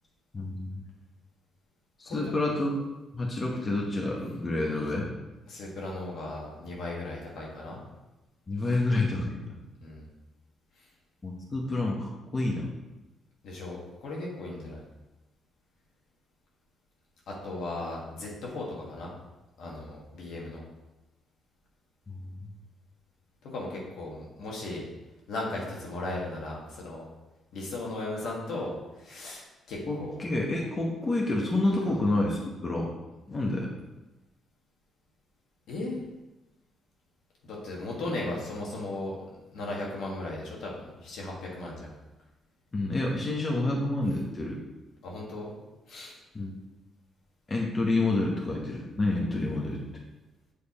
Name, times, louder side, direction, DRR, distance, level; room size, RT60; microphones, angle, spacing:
voice 1, 0.3-0.8 2.0-2.7 3.1-5.1 8.5-9.5 11.2-12.7 22.1-22.5 29.9-32.9 33.3-33.7 42.7-44.6 46.3-46.5 47.5-49.8, left 2 dB, 30° left, -2 dB, 1.0 m, -28 dB
voice 2, 5.5-7.8 8.6-8.8 9.8-10.1 13.4-14.8 17.3-19.1 19.6-20.6 23.5-24.8 25.3-27.0 27.5-30.1 31.9-32.0 35.7-36.0 37.4-39.2 39.5-41.9 45.0-45.5 45.9-46.1, left 2 dB, 75° left, -3 dB, 1.6 m, -36 dB
6.9 x 3.4 x 4.2 m, 1.0 s
cardioid pair, 90°, 0 cm